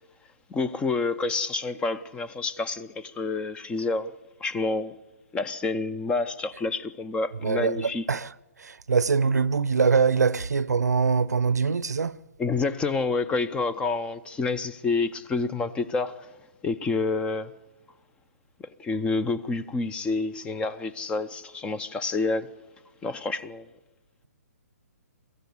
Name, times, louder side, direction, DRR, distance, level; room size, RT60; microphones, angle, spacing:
voice 1, 0.5-4.1 4.4-4.9 5.3-8.0 12.4-16.3 16.6-17.5 18.6-22.5 23.0-23.7, left 3 dB, 10° left, 0.6 m, -28 dB
voice 2, 7.4-8.3 8.6-12.2, right 5 dB, 80° right, 0.7 m, -23 dB
23.0 x 15.0 x 8.0 m
hypercardioid pair, 135°, 9 cm